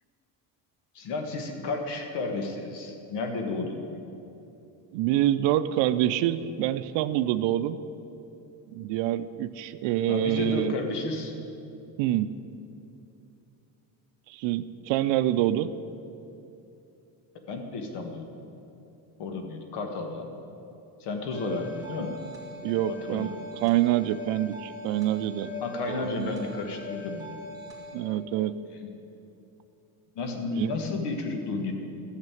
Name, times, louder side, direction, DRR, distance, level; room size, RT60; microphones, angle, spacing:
voice 1, 0.9-3.9 10.1-11.3 17.5-18.3 19.2-20.3 21.0-22.1 22.9-23.3 25.6-27.3 28.8-28.9 30.2-31.7, left 3 dB, 65° left, 4 dB, 1.7 m, -32 dB
voice 2, 4.9-7.8 8.7-10.7 12.0-12.3 14.3-15.7 21.5-21.6 22.6-23.3 23.6-25.5 25.9-26.3 27.9-28.6 30.5-30.7, right 13 dB, 85° right, 12 dB, 0.6 m, -26 dB
sound 1, 21.3-27.9, left 2 dB, 10° right, 2.1 m, -41 dB
12.5 x 6.7 x 9.2 m, 2.8 s
cardioid pair, 150°, 44 cm